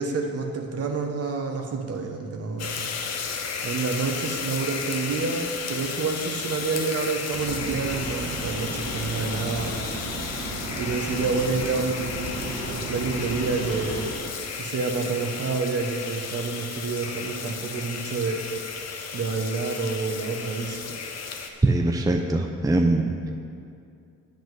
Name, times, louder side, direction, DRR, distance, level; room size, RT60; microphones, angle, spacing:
voice 1, 0.0-3.0 3.6-9.8 10.8-14.1 14.6-18.4 19.1-21.0, right 4 dB, 55° right, 3 dB, 1.3 m, -28 dB
sound 1, 2.6-21.5, left 5 dB, 55° left, 1.0 m, -34 dB
sound 2, 7.3-14.1, right 2 dB, 80° right, 2.1 m, -34 dB
voice 2, 21.6-23.3, right 2 dB, 10° right, 3 dB, 0.7 m, -22 dB
9.0 x 5.3 x 7.9 m, 2.5 s
cardioid pair, 90°, 30 cm